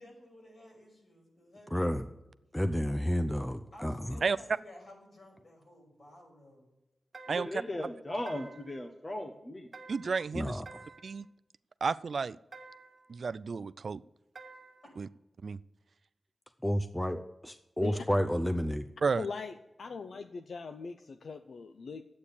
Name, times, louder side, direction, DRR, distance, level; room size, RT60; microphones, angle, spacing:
voice 1, 0.0-2.0 3.7-6.7 17.8-17.9 19.8-20.2, left 1 dB, 55° left, -2 dB, 6.0 m, -54 dB
voice 2, 1.7-2.0 2.5-4.2 10.3-10.8 16.6-18.8, equal, 10° left, 8 dB, 0.6 m, -31 dB
sound 1, 7.1-7.7 8.3-8.8 9.7-10.3 10.7-11.2 12.5-13.1 14.4-14.9, right 3 dB, 35° right, 1.4 m, -51 dB
voice 3, 7.3-9.7, left 1 dB, 30° left, 4 dB, 1.1 m, -37 dB
voice 4, 9.9-10.6 11.0-11.3 11.8-12.4 13.1-14.0 15.0-15.1 15.4-15.6 19.0-19.2, right 5 dB, 60° right, 16 dB, 0.4 m, -31 dB
voice 5, 19.2-22.0, left 5 dB, 80° left, 8 dB, 0.6 m, -41 dB
11.5 x 8.7 x 8.4 m, 0.96 s
wide cardioid pair, 125°, 0 cm